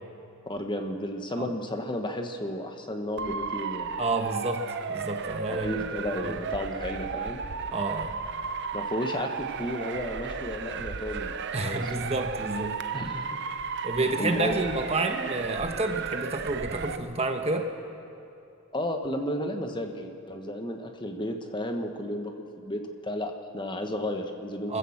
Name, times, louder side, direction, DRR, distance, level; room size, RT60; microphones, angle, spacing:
voice 1, 0.5-3.9 5.5-7.4 8.7-11.9 12.9-13.4 14.2-14.6 18.7-24.8, left 1 dB, 20° left, 4 dB, 1.3 m, -33 dB
Motor vehicle (road) / Siren, 3.2-17.0, right 5 dB, 55° right, 0.7 m, -34 dB
voice 2, 4.0-5.8 6.2-6.4 7.7-8.2 11.5-12.8 13.8-17.7 24.7-24.8, right 2 dB, 30° right, 5 dB, 1.2 m, -29 dB
23.5 x 15.5 x 7.3 m, 2.7 s
head